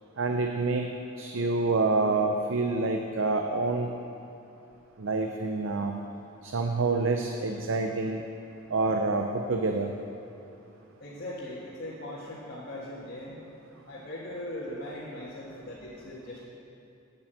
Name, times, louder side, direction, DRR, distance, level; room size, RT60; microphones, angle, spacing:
voice 1, 0.2-0.9 1.2-3.9 5.0-6.0 6.4-8.2 8.7-9.9, right 3 dB, 65° right, 3 dB, 0.6 m, -27 dB
voice 2, 11.0-13.4 13.9-16.5, left 1 dB, 50° left, -8 dB, 1.7 m, -39 dB
8.8 x 8.6 x 7.6 m, 2.8 s
head